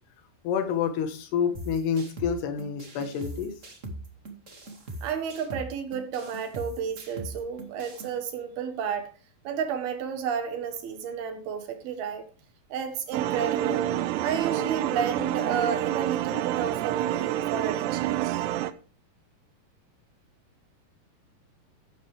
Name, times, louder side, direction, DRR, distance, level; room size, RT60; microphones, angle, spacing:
voice 1, 0.5-3.5, left 7 dB, 80° left, 3.5 m, -28 dB
sound 1, 1.5-8.1, right 1 dB, 30° right, 1.4 m, -41 dB
voice 2, 5.0-9.1 9.5-12.3 12.7-13.9 14.2-18.4, right 7 dB, 70° right, 3.5 m, -31 dB
sound 2, 13.1-18.7, right 13 dB, 90° right, 2.9 m, -28 dB
13.5 x 9.2 x 3.5 m
omnidirectional pair, 4.7 m